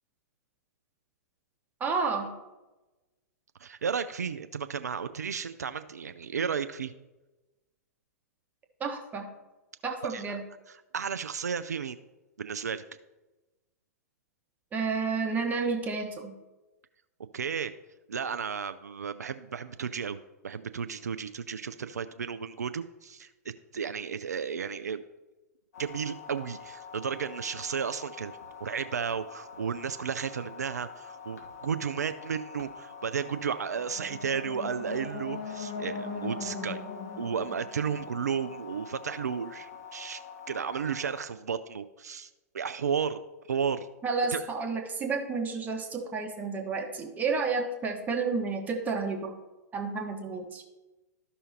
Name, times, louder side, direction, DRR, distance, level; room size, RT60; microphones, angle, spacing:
voice 1, 1.8-2.3 8.8-9.3 9.8-10.4 14.7-16.3 44.0-49.3 49.7-50.6, right 4 dB, 20° right, 2 dB, 1.2 m, -31 dB
voice 2, 3.6-6.9 10.1-10.2 10.7-12.0 12.4-12.8 17.3-17.7 18.1-23.3 23.7-25.0 25.8-36.8 37.2-40.2 40.5-43.2 43.5-43.9 44.3-44.5, right 6 dB, 75° right, 11 dB, 0.4 m, -33 dB
sound 1, 25.7-41.3, left 6 dB, 70° left, 1.3 m, -46 dB
sound 2, 33.7-38.8, left 4 dB, 40° left, 2.1 m, -39 dB
13.5 x 5.5 x 2.9 m, 1.1 s
figure-of-eight pair, 105°, 9 cm